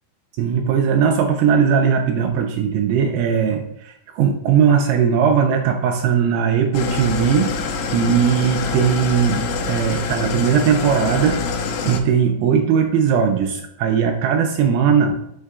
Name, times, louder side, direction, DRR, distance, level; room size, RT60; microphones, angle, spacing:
voice 1, 0.4-7.5 7.9-15.4, right 7 dB, 90° right, 3 dB, 2.1 m, -19 dB
Engine starting / Idling, 6.7-12.0, left 4 dB, 85° left, 2.9 m, -25 dB
6.4 x 4.6 x 3.5 m, 0.78 s
omnidirectional pair, 5.0 m